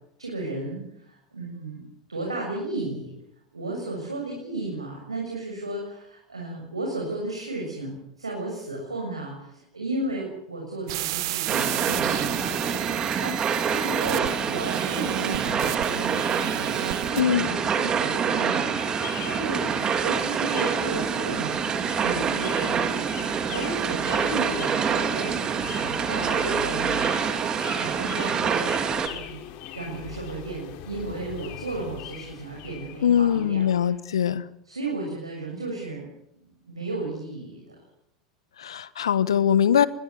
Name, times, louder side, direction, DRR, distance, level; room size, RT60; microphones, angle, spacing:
voice 1, 0.2-1.8 2.1-3.1 3.5-19.0 19.2-21.6 22.0-27.4 27.8-28.7 29.0-29.4 29.7-33.9 34.6-36.1 36.4-37.8, right 2 dB, 85° right, 0 dB, 7.0 m, -34 dB
sound 1, 10.9-17.2, right 16 dB, 55° right, 1.5 m, -32 dB
sound 2, 11.5-29.1, right 7 dB, 30° right, 3.7 m, -26 dB
voice 2, 17.2-17.5 33.0-34.4 38.6-39.9, left 9 dB, 70° left, 17 dB, 1.4 m, -22 dB
sound 3, 18.8-34.0, left 10 dB, 50° left, 3.5 m, -41 dB
24.0 x 21.5 x 8.0 m, 0.74 s
figure-of-eight pair, 85°, 3 cm